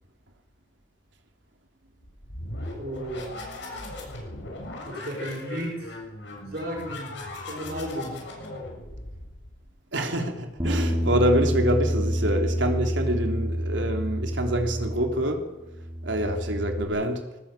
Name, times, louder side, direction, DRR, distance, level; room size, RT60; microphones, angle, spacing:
sound 1, 2.0-9.7, left 1 dB, 75° left, 7.4 m, -38 dB
voice 1, 2.8-3.6 4.9-5.9 6.4-7.1 7.5-8.1, right 1 dB, 55° right, 0 dB, 5.9 m, -34 dB
voice 2, 9.9-15.5 16.0-17.2, equal, 80° right, 4 dB, 3.3 m, -26 dB
Bass guitar, 10.6-15.4 15.7-16.8, equal, 20° right, 3.7 m, -28 dB
21.0 x 18.0 x 9.1 m, 1.1 s
head